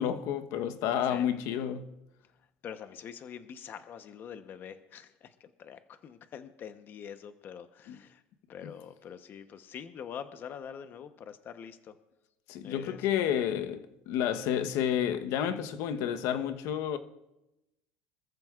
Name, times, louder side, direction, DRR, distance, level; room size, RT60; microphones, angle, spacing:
voice 1, 0.0-1.9 7.9-8.0 12.5-17.0, left 9 dB, 65° left, 1.1 m, -30 dB
voice 2, 2.6-8.2 8.5-12.0 12.6-13.1, left 8 dB, 40° left, 1.0 m, -45 dB
25.0 x 14.0 x 2.5 m
supercardioid pair, 120°, 5 cm